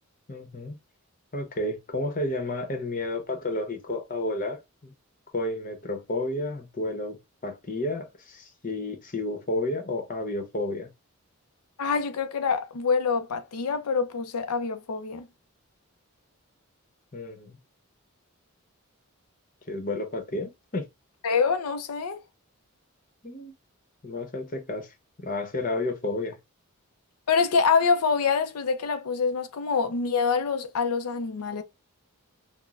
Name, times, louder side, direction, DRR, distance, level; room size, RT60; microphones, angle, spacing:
voice 1, 0.3-0.8 1.3-4.9 5.3-7.2 7.4-10.9 17.1-17.6 19.7-20.9 23.2-23.5 24.0-24.9 25.2-26.4, left 2 dB, 35° left, 0.9 m, -31 dB
voice 2, 11.8-15.2 21.2-22.2 27.3-31.6, left 5 dB, 90° left, 0.5 m, -25 dB
5.9 x 2.1 x 2.4 m
head